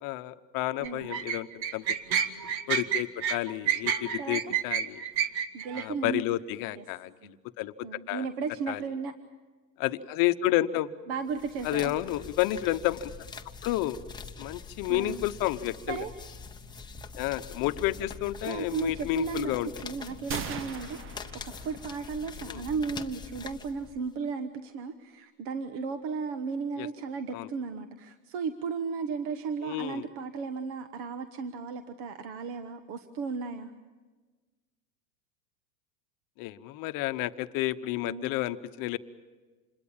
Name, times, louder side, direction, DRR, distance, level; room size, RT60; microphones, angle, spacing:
voice 1, 0.0-1.5 1.7-1.8 2.7-5.0 5.7-8.3 8.7-8.8 9.8-10.9 11.6-13.1 13.6-14.0 14.4-16.0 17.1-19.7 22.5-22.6 26.8-26.9 27.3-27.5 29.6-30.1 36.4-39.0, left 15 dB, 45° left, 11 dB, 1.0 m, -30 dB
voice 2, 0.8-1.1 4.2-4.4 5.5-6.2 6.7-6.8 7.2-7.4 7.8-9.1 11.1-11.9 14.9-15.2 15.9-16.1 18.5-19.5 19.8-33.7 38.0-38.3, right 5 dB, 50° right, 9 dB, 1.3 m, -35 dB
sound 1, 0.8-5.8, right 8 dB, 80° right, 1.7 m, -29 dB
sound 2, 11.3-24.1, left 5 dB, 10° left, 0.8 m, -44 dB
sound 3, 20.3-22.2, right 7 dB, 25° right, 0.8 m, -39 dB
27.5 x 21.5 x 7.3 m, 1.3 s
supercardioid pair, 135°, 50 cm